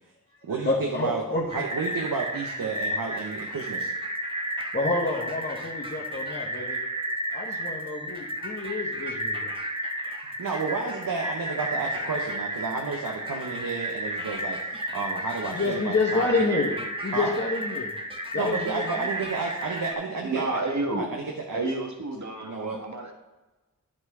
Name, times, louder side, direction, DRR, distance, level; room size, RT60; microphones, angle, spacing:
voice 1, 0.6-1.4 4.7-6.8 7.3-9.5 15.4-17.9 18.3-19.1, left 3 dB, 30° left, -4 dB, 1.3 m, -28 dB
sound 1, 1.5-19.9, right 1 dB, 15° right, 1.3 m, -33 dB
voice 2, 1.5-3.9 10.2-16.4 17.1-17.3 18.3-20.4 21.0-21.1 21.5-21.6 22.4-22.8, right 4 dB, 80° right, 1 dB, 1.0 m, -31 dB
voice 3, 20.1-21.1 21.5-23.1, right 2 dB, 55° right, 3 dB, 1.4 m, -30 dB
9.9 x 4.4 x 4.8 m, 1.1 s
cardioid pair, 45°, 33 cm